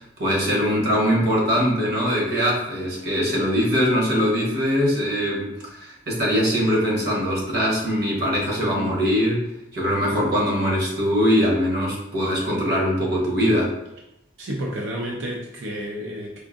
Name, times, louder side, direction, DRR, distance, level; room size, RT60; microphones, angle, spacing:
voice 1, 0.2-9.4 9.7-13.7, equal, 55° right, -2 dB, 1.0 m, -22 dB
voice 2, 14.4-16.4, equal, 85° right, -2 dB, 0.5 m, -30 dB
4.8 x 2.5 x 2.4 m, 0.84 s
head